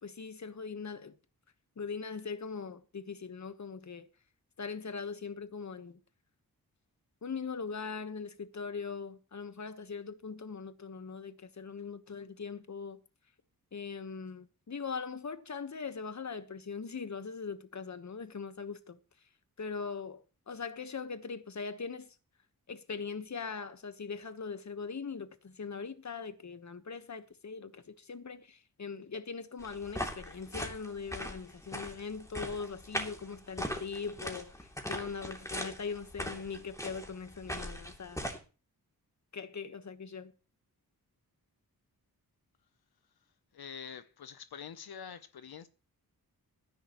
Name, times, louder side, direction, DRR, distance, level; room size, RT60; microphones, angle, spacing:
voice 1, 0.0-1.1 1.8-4.1 4.6-6.0 7.2-13.0 13.7-19.0 19.6-22.1 22.7-38.2 39.3-40.3, left 5 dB, 50° left, 1.4 m, -41 dB
sound 1, 29.6-38.4, equal, 10° left, 2.9 m, -40 dB
voice 2, 43.5-45.7, left 7 dB, 85° left, 0.9 m, -46 dB
20.0 x 11.0 x 3.1 m
wide cardioid pair, 85°, 37 cm